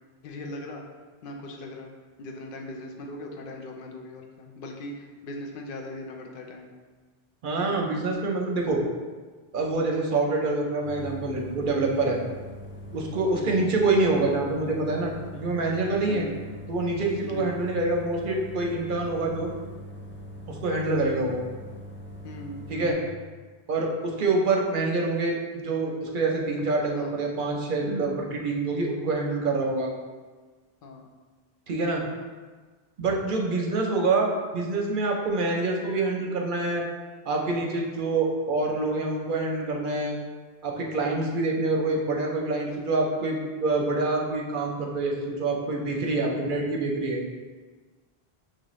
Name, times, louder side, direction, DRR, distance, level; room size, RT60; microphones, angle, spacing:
voice 1, 0.2-0.8 1.2-1.9 2.2-6.7 13.3-13.5 16.1-16.4 17.2-17.5 22.2-23.1 26.9-27.2 30.8-31.0 41.0-41.4, left 1 dB, 65° left, 1 dB, 0.8 m, -39 dB
voice 2, 7.4-8.8 9.5-12.2 12.9-16.3 16.7-19.5 20.5-21.4 22.7-23.0 23.7-25.4 25.6-29.9 31.7-32.0 33.0-36.8 37.3-40.2 40.6-47.2, right 3 dB, 60° right, 0 dB, 0.7 m, -26 dB
sound 1, 10.8-22.9, left 1 dB, 20° left, 0.3 m, -42 dB
6.1 x 2.5 x 3.0 m, 1.4 s
omnidirectional pair, 1.0 m